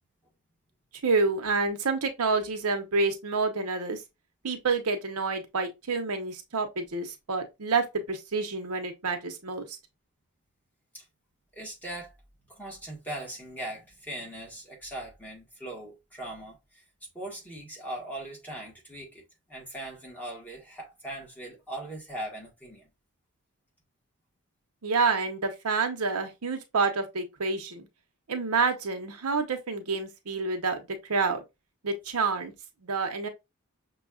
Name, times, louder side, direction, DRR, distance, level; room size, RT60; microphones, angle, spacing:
voice 1, 1.0-4.0 4.4-9.8 24.8-27.9 28.3-31.4 31.8-32.5 32.8-33.3, right 4 dB, 85° right, 0.8 m, -28 dB
voice 2, 11.5-16.8 17.1-19.2 19.5-22.9, right 1 dB, 10° left, 1.4 m, -40 dB
6.1 x 2.3 x 2.4 m
head